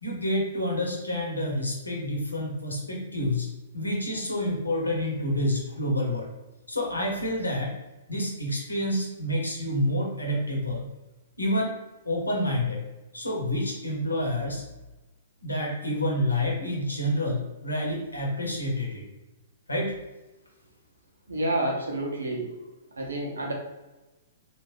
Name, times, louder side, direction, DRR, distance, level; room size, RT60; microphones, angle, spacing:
voice 1, 0.0-3.5 3.7-6.3 6.7-7.7 8.1-10.8 11.4-11.7 12.0-12.8 13.1-14.6 15.4-19.0 19.7-19.9, left 1 dB, 80° left, -1 dB, 1.0 m, -28 dB
voice 2, 21.3-22.5 23.0-23.5, right 1 dB, 70° right, 0 dB, 0.8 m, -29 dB
3.5 x 2.5 x 3.2 m, 1.1 s
figure-of-eight pair, 110°, 0 cm